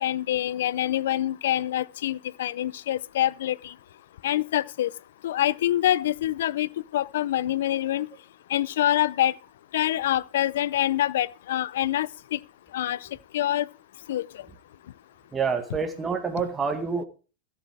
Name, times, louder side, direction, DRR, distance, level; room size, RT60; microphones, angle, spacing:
voice 1, 0.0-3.7 4.2-4.9 5.2-8.1 8.5-9.3 9.7-12.4 12.7-13.1 13.3-13.7 14.1-14.3, left 12 dB, 80° left, 0.5 m, -25 dB
voice 2, 15.3-17.0, right 5 dB, 15° right, 1.9 m, -27 dB
13.5 x 8.3 x 4.8 m
supercardioid pair, 130°, 0 cm